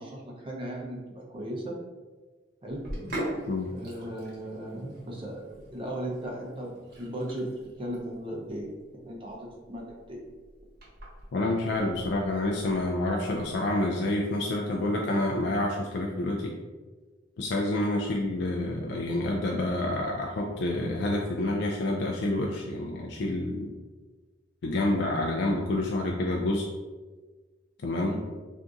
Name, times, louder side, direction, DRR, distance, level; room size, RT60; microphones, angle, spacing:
voice 1, 0.0-1.8 2.6-2.8 3.7-6.7 6.9-7.5 7.8-8.7 9.0-10.2 28.0-28.2, right 1 dB, 30° right, -1 dB, 0.6 m, -37 dB
Sink (filling or washing), 2.7-13.5, right 1 dB, 55° right, 1.0 m, -42 dB
voice 2, 11.3-16.5 17.4-23.7 24.6-26.6 27.8-28.1, left 1 dB, 60° left, 0 dB, 0.3 m, -28 dB
2.5 x 2.4 x 3.7 m, 1.3 s
head